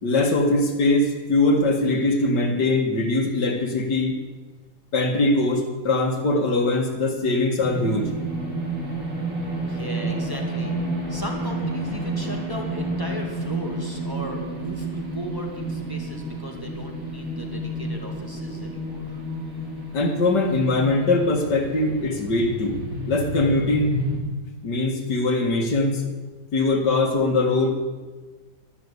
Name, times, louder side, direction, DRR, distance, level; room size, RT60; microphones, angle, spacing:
voice 1, 0.0-4.2 4.9-8.1 19.9-22.8 23.1-23.9 24.6-26.0 26.5-27.8, left 2 dB, 75° left, 3 dB, 2.4 m, -21 dB
sound 1, 7.5-24.2, right 1 dB, 45° right, 3.5 m, -30 dB
voice 2, 9.7-10.8 11.1-19.2, equal, 15° right, 0 dB, 1.9 m, -36 dB
12.0 x 12.0 x 8.1 m, 1.3 s
omnidirectional pair, 1.9 m